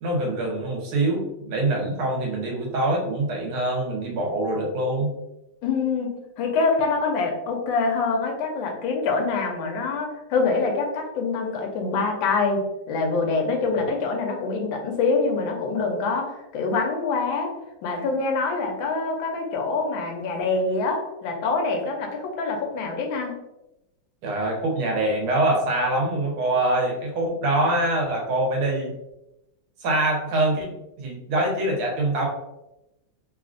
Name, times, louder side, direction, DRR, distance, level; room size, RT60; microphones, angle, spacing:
voice 1, 0.0-5.2 13.8-13.9 24.2-29.0 29.8-30.7 31.0-32.3, right 1 dB, 85° right, 0 dB, 1.7 m, -24 dB
voice 2, 5.6-17.5 17.8-23.3, left 4 dB, 75° left, 2 dB, 1.4 m, -25 dB
3.7 x 2.4 x 2.4 m, 0.92 s
omnidirectional pair, 2.2 m